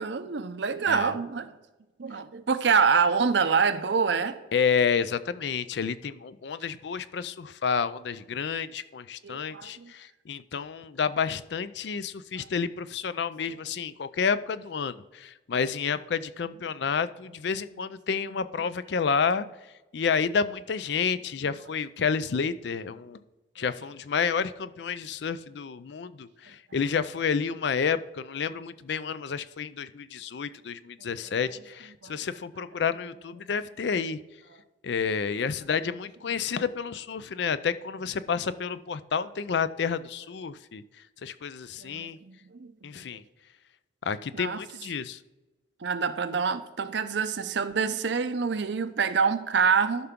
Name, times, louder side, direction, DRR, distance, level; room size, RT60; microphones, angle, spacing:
voice 1, 0.0-1.5 2.0-4.4 9.2-9.9 32.0-32.1 41.8-42.7 44.3-44.6 45.8-50.1, right 5 dB, 70° right, 0.6 m, -26 dB
voice 2, 4.5-19.5 19.9-23.2 23.6-34.2 34.8-40.8 41.2-42.2 42.8-43.2 44.0-45.2, left 6 dB, 70° left, 0.4 m, -30 dB
13.5 x 5.7 x 3.7 m
head